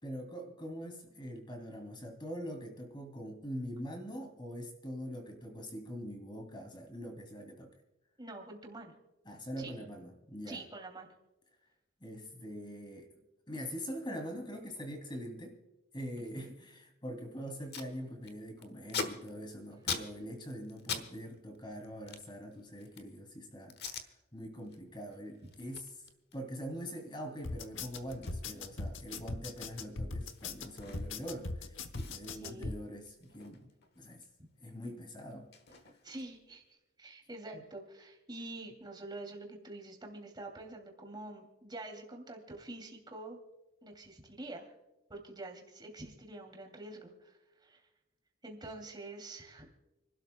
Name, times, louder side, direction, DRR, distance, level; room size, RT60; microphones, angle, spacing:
voice 1, 0.0-7.7 9.3-10.6 12.0-15.6 15.9-25.9 26.3-34.3 34.6-35.5 37.5-37.6, equal, 25° left, 3 dB, 2.7 m, -43 dB
voice 2, 8.2-9.0 9.6-9.7 10.5-11.1 16.2-16.5 32.4-32.7 36.0-43.4 43.8-44.7 45.1-47.8 48.4-49.7, right 2 dB, 20° right, 2 dB, 2.6 m, -46 dB
Packing tape duct tape, 17.2-17.3 17.5-17.9 18.2-21.1 21.3-23.2 23.7-24.1 24.5-24.8 25.1-31.3 31.6-31.7 31.9-34.3 34.6-36.5, left 6 dB, 50° left, 1.2 m, -44 dB
sound 1, 27.4-32.8, left 3 dB, 65° left, 0.9 m, -40 dB
29.5 x 12.5 x 2.2 m, 1.0 s
head